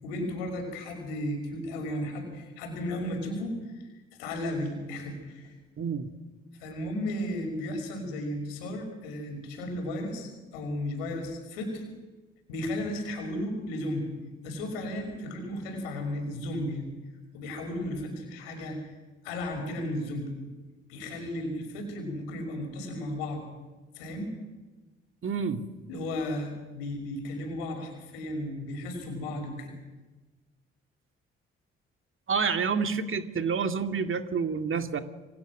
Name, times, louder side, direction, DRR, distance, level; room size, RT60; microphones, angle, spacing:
voice 1, 0.0-3.6 4.2-5.5 6.6-11.8 12.5-14.1 14.4-16.8 17.3-18.8 19.2-20.3 20.9-23.4 23.9-24.3 25.9-29.7, left 1 dB, 80° left, 5 dB, 5.9 m, -34 dB
voice 2, 5.8-6.1 25.2-25.7 32.3-35.0, right 5 dB, 45° right, 7 dB, 2.3 m, -28 dB
27.5 x 23.0 x 6.3 m, 1.2 s
hypercardioid pair, 45°, 29 cm